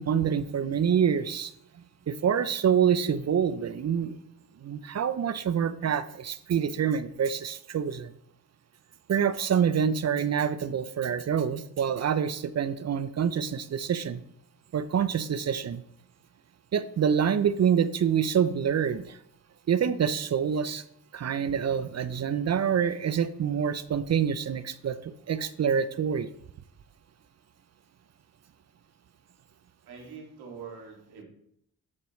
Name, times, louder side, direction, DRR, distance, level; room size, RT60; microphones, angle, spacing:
voice 1, 0.0-1.5 2.1-4.2 4.6-8.1 9.1-14.2 14.7-15.8 16.7-19.2 19.7-20.8 21.1-26.3, right 8 dB, 45° right, 13 dB, 0.6 m, -26 dB
voice 2, 29.8-31.2, right 5 dB, 85° right, 0 dB, 2.3 m, -44 dB
13.0 x 4.5 x 3.1 m, 0.71 s
supercardioid pair, 60°, 38 cm